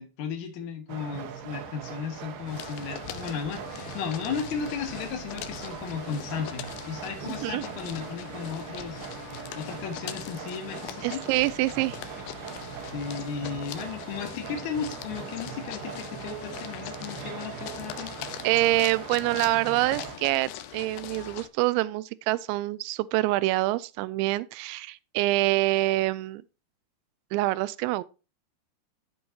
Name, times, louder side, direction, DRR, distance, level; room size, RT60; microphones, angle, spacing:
voice 1, 0.0-9.0 9.6-11.2 12.9-18.1, left 6 dB, 50° left, 2.6 m, -35 dB
sound 1, 0.9-20.2, right 8 dB, 70° right, 2.8 m, -41 dB
sound 2, 2.5-21.5, left 12 dB, 85° left, 2.1 m, -42 dB
voice 2, 7.2-7.6 11.0-12.0 18.4-26.4 27.3-28.0, right 18 dB, 85° right, 2.9 m, -26 dB
14.5 x 5.5 x 2.8 m
omnidirectional pair, 5.2 m